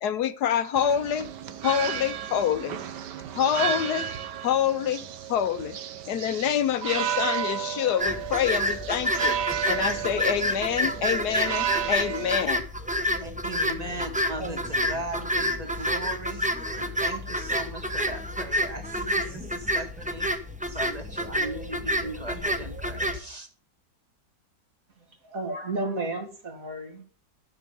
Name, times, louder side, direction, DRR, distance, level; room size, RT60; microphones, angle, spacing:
voice 1, 0.0-1.3 1.6-2.8 3.3-4.1 4.4-5.0 5.3-5.8 6.1-9.4 9.7-12.6, left 9 dB, 75° left, 1.3 m, -26 dB
sound 1, 0.7-12.5, right 9 dB, 85° right, 1.6 m, -33 dB
sound 2, 8.0-23.2, equal, 5° right, 0.8 m, -29 dB
voice 2, 13.2-20.3 20.7-23.5, right 1 dB, 25° right, 1.8 m, -38 dB
voice 3, 14.4-15.4 25.0-27.0, right 2 dB, 55° right, 2.8 m, -34 dB
13.0 x 6.9 x 6.9 m
omnidirectional pair, 1.8 m